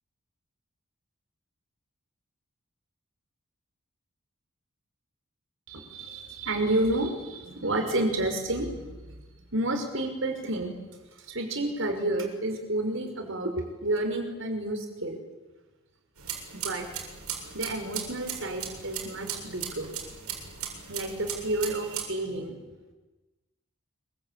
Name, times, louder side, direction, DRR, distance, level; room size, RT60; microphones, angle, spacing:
voice 1, 5.7-9.2 9.5-10.8 11.2-15.2 16.5-16.8 17.5-19.9 20.9-22.5, right 1 dB, 60° right, 5 dB, 5.7 m, -30 dB
sound 1, 16.2-22.0, right 8 dB, 85° right, 7.4 m, -37 dB
26.5 x 24.0 x 9.1 m, 1.2 s
head